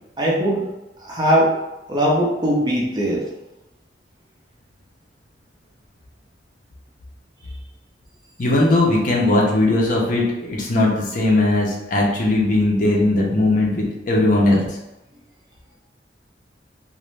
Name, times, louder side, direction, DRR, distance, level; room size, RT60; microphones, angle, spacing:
voice 1, 0.2-0.6 1.0-1.5 1.9-3.2, equal, 25° right, -4 dB, 0.5 m, -19 dB
voice 2, 8.4-14.8, left 2 dB, 45° left, -3 dB, 0.6 m, -18 dB
2.5 x 2.1 x 3.1 m, 0.96 s
head